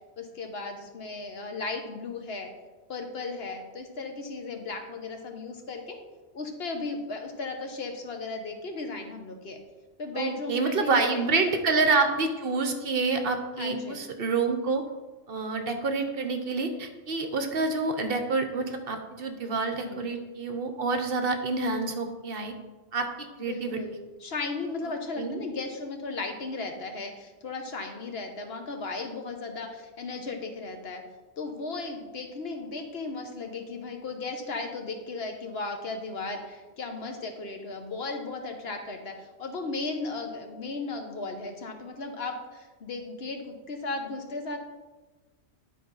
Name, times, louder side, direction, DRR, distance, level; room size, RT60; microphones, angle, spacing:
voice 1, 0.2-2.5 2.9-6.0 6.3-9.6 10.0-11.5 13.6-14.0 19.8-20.0 23.5-31.0 31.4-44.6, left 3 dB, 60° left, 4 dB, 1.2 m, -36 dB
voice 2, 10.1-14.8 15.3-22.5 22.9-23.8 25.2-25.4, right 3 dB, 55° right, 6 dB, 1.0 m, -28 dB
10.5 x 4.2 x 5.4 m, 1.2 s
omnidirectional pair, 1.2 m